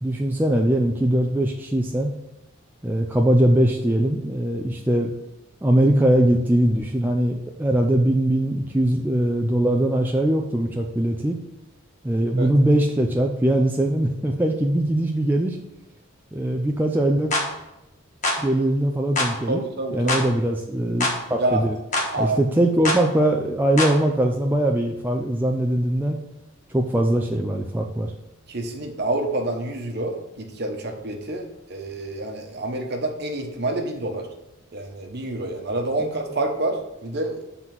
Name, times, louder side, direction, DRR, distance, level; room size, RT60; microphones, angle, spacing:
voice 1, 0.0-2.1 2.8-5.1 5.6-11.4 12.0-15.6 16.3-17.3 18.4-19.6 19.9-21.8 22.2-26.2 26.7-28.1, right 1 dB, 10° right, 1 dB, 0.4 m, -21 dB
sound 1, 17.3-17.5 18.2-18.4 19.2-19.3 20.1-20.3 21.0-21.2 21.9-22.1 22.9-23.0 23.8-24.0, left 2 dB, 35° left, 1.4 m, -23 dB
voice 2, 19.5-20.2 21.4-21.7 22.1-22.4 28.5-34.3 34.7-37.4, right 2 dB, 50° right, 3 dB, 1.1 m, -27 dB
7.6 x 4.0 x 5.9 m, 0.92 s
head